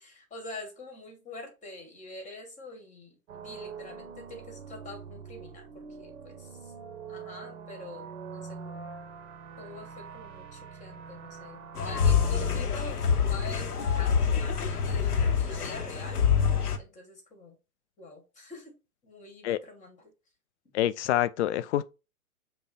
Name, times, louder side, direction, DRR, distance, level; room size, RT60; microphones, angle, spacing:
voice 1, 0.0-6.7 7.1-8.9 9.6-16.2 16.8-17.6 18.0-18.7 19.0-20.1 20.6-20.7, left 2 dB, 15° left, 1.6 m, -45 dB
sound 1, 3.3-12.6, right 5 dB, 45° right, 0.9 m, -44 dB
sound 2, 11.8-16.8, left 7 dB, 80° left, 0.9 m, -26 dB
voice 2, 20.7-21.9, left 13 dB, 50° left, 0.5 m, -26 dB
5.5 x 2.3 x 4.1 m
figure-of-eight pair, 110°, 45 cm